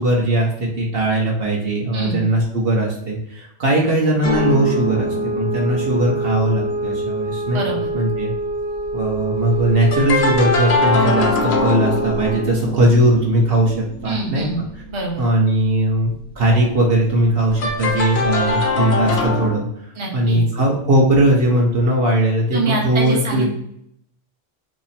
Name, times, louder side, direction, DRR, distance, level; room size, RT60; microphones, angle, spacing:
voice 1, 0.0-7.6 7.9-8.3 8.9-13.7 14.0-14.4 15.2-16.1 16.4-23.5, right 1 dB, 60° right, -1 dB, 1.0 m, -19 dB
voice 2, 1.9-2.3 7.5-7.9 14.0-14.6 14.9-15.2 19.9-20.4 22.5-23.5, right 3 dB, 30° right, -2 dB, 0.9 m, -25 dB
sound 1, 4.2-8.5 8.8-15.1 17.5-19.6, left 3 dB, 65° left, 0.9 m, -23 dB
sound 2, 4.2-12.6, right 1 dB, 85° right, 1.0 m, -26 dB
3.0 x 2.9 x 4.1 m, 0.71 s
omnidirectional pair, 1.2 m